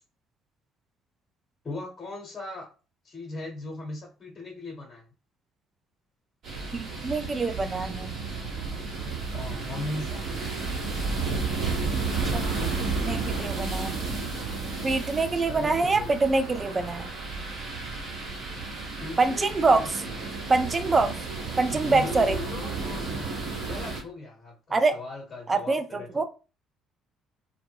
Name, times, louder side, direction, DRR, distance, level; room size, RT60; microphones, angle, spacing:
voice 1, 1.6-2.7 3.0-5.1 9.3-10.2 15.3-16.1 19.0-20.0 21.7-26.2, left 2 dB, 35° left, -1 dB, 0.9 m, -38 dB
sound 1, 6.4-24.0, right 4 dB, 55° right, 0.9 m, -32 dB
voice 2, 6.7-8.1 12.3-12.4 12.8-14.1 14.8-17.1 19.2-19.8 20.5-21.1 21.6-22.4 24.7-24.9 25.5-26.2, right 3 dB, 30° right, 8 dB, 0.4 m, -25 dB
2.1 x 2.0 x 3.3 m, 0.34 s
hypercardioid pair, 55°, 0 cm